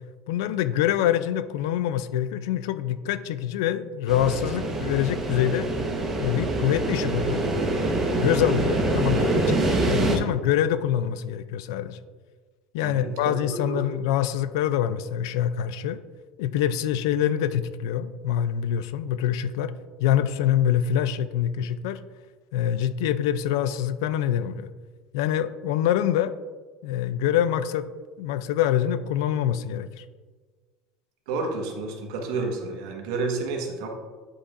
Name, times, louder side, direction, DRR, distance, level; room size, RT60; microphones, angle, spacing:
voice 1, 0.3-5.7 6.2-7.5 8.2-9.2 9.5-12.0 12.7-16.0 16.4-19.7 20.0-22.0 22.5-24.7 25.1-26.3 26.8-27.9 28.2-30.0, left 10 dB, 90° left, 14 dB, 0.4 m, -25 dB
sound 1, 4.1-10.2, right 2 dB, 20° right, 1.0 m, -25 dB
voice 2, 9.1-9.6 12.8-13.8 31.3-33.9, right 3 dB, 80° right, 2 dB, 1.3 m, -30 dB
8.5 x 5.3 x 2.5 m, 1.4 s
cardioid pair, 145°, 2 cm